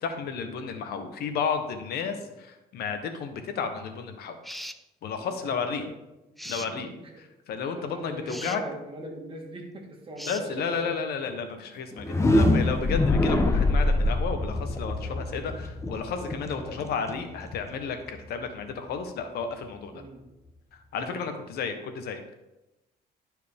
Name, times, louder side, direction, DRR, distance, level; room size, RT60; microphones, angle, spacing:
voice 1, 0.0-4.4 5.0-5.8 6.5-6.9 7.5-8.6 10.3-20.0 20.7-22.2, left 6 dB, 70° left, 7 dB, 1.0 m, -32 dB
sound 1, 4.4-4.8 6.4-6.7 8.3-8.6 10.2-10.5, equal, ahead, 0.3 m, -39 dB
voice 2, 5.1-5.7 6.6-7.2 7.8-10.9 11.9-12.4 16.6-16.8 19.9-20.3 21.0-21.4, right 1 dB, 30° right, 1 dB, 1.9 m, -42 dB
sound 2, 11.9-17.8, left 2 dB, 15° left, 0.8 m, -25 dB
11.5 x 4.7 x 3.6 m, 0.98 s
cardioid pair, 110°, 17 cm